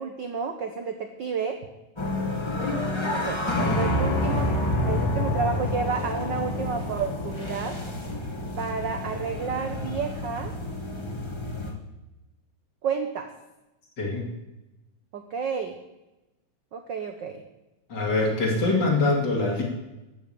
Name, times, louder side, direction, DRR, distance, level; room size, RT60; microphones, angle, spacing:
voice 1, 0.0-1.6 3.0-4.5 4.9-7.8 8.6-10.5 12.8-13.3 15.1-15.8 16.7-17.4, right 6 dB, 70° right, 6 dB, 1.0 m, -31 dB
sound 1, 2.0-11.7, left 1 dB, 15° left, 1.1 m, -28 dB
voice 2, 17.9-19.6, left 3 dB, 35° left, -1 dB, 3.3 m, -24 dB
13.5 x 7.4 x 9.0 m, 0.99 s
omnidirectional pair, 3.4 m